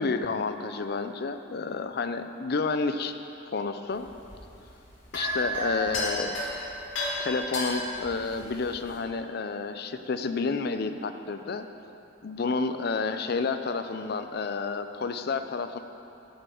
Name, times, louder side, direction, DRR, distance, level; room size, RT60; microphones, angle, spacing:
voice 1, 0.0-3.1 3.5-4.1 5.1-6.4 7.2-11.7 12.2-15.8, left 4 dB, 55° left, 9 dB, 0.5 m, -30 dB
sound 1, 3.9-9.0, left 1 dB, 80° left, 2.0 m, -33 dB
9.8 x 5.4 x 7.8 m, 2.8 s
head